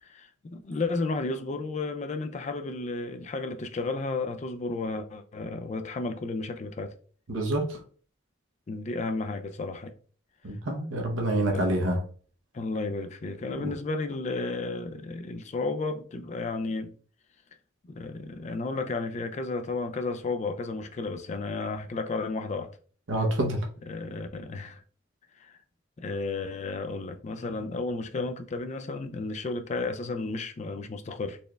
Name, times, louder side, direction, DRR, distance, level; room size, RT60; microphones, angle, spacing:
voice 1, 0.0-7.0 8.7-9.9 11.5-11.7 12.5-16.9 17.8-22.7 23.9-24.8 25.4-25.6 26.0-31.4, left 3 dB, 35° left, 0.3 m, -33 dB
voice 2, 7.3-7.8 10.4-12.0 13.5-13.7 23.1-23.6, right 1 dB, 65° right, 0.8 m, -27 dB
4.1 x 3.2 x 2.3 m
head